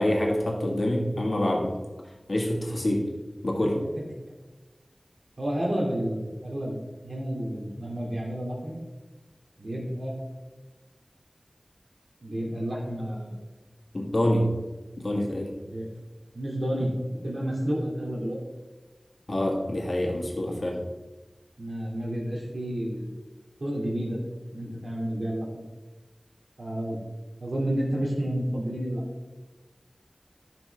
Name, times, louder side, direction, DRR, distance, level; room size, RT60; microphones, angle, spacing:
voice 1, 0.0-1.7 2.3-3.1 3.4-3.8 13.9-14.5 15.0-15.5 19.3-20.8, left 1 dB, 65° left, 0 dB, 1.8 m, -26 dB
voice 2, 3.6-4.1 5.4-8.8 9.6-10.2 12.2-13.3 15.7-15.9 16.3-18.4 21.6-23.0 23.6-24.2 24.5-25.5 26.6-27.0 27.4-29.0, equal, 90° right, -4 dB, 2.6 m, -30 dB
11.5 x 6.0 x 3.4 m, 1.2 s
wide cardioid pair, 50°, 0 cm